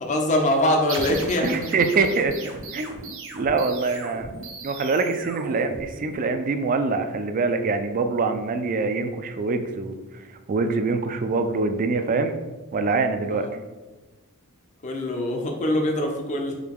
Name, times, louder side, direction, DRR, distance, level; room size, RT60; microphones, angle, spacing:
voice 1, 0.0-1.7 13.3-13.5 14.8-16.6, left 1 dB, 35° left, 3 dB, 0.4 m, -23 dB
sound 1, 0.9-6.3, right 3 dB, 65° right, 0.7 m, -37 dB
voice 2, 1.4-4.3 4.6-10.0 10.5-12.4 12.7-13.5, right 4 dB, 40° right, 8 dB, 0.3 m, -24 dB
4.8 x 2.2 x 3.5 m, 1.2 s
head